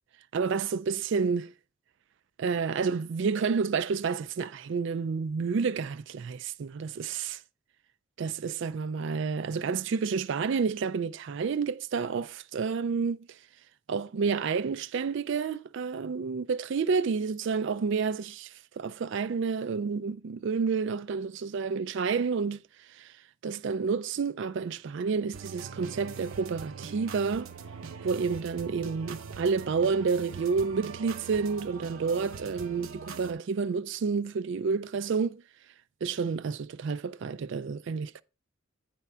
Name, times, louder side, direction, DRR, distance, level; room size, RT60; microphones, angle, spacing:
voice 1, 0.3-1.5 2.4-7.4 8.2-13.3 13.9-22.6 22.9-23.1 23.4-27.5 28.0-35.4 36.0-38.2, right 5 dB, 60° right, 0.4 m, -30 dB
sound 1, 25.3-33.3, right 5 dB, 75° right, 0.8 m, -42 dB
9.2 x 3.5 x 5.5 m
head